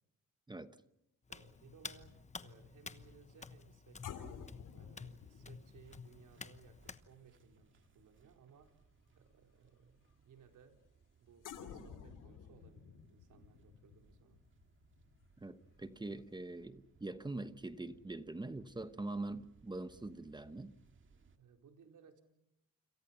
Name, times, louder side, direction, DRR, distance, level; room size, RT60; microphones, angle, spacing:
Hands, 1.3-7.0, left 4 dB, 25° left, 1.1 m, -51 dB
voice 1, 1.3-8.8 9.1-10.8 11.2-14.4 21.4-22.2, right 6 dB, 75° right, 4 dB, 4.3 m, -63 dB
sound 1, 1.9-8.5 8.8-9.1 11.4-16.1 16.4-16.6, left 7 dB, 80° left, 3.0 m, -53 dB
sound 2, 5.0-21.4, right 5 dB, 40° right, 2.0 m, -68 dB
voice 2, 15.4-20.7, right 2 dB, 15° right, 11 dB, 1.1 m, -43 dB
29.0 x 27.5 x 5.8 m, 0.81 s
cardioid pair, 125°, 31 cm